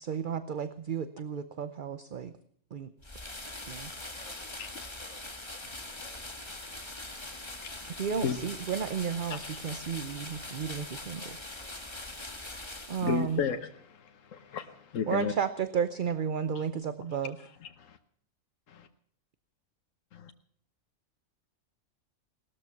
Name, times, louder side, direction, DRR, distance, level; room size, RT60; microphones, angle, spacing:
voice 1, 0.0-2.3 2.7-2.9 3.7-3.9 8.0-11.2 12.9-13.4 15.1-17.3, right 7 dB, 45° right, 12 dB, 0.8 m, -33 dB
sound 1, 3.0-13.4, left 2 dB, 20° left, 1.7 m, -42 dB
voice 2, 4.0-6.2 11.1-12.5, equal, 70° left, -1 dB, 4.5 m, -58 dB
voice 3, 7.6-8.5 9.3-9.6 13.0-15.3 16.5-16.6 17.4-18.0 18.7-18.9 20.1-20.3, left 7 dB, 85° left, 7 dB, 1.3 m, -35 dB
18.5 x 13.0 x 5.8 m, 0.63 s
omnidirectional pair, 1.3 m